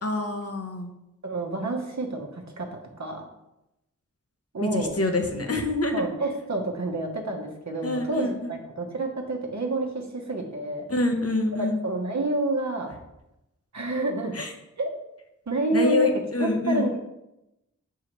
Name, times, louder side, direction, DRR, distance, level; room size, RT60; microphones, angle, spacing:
voice 1, 0.0-0.9 4.6-6.0 7.8-8.5 10.9-11.8 14.3-14.5 15.7-16.9, left 2 dB, 50° left, 4 dB, 0.9 m, -26 dB
voice 2, 1.2-3.2 4.5-5.0 5.9-10.8 11.6-13.0 13.7-14.4 14.8-14.9 15.5-16.1 16.4-17.0, right 2 dB, 60° right, 2 dB, 1.1 m, -29 dB
6.4 x 4.7 x 3.1 m, 0.90 s
wide cardioid pair, 55°, 31 cm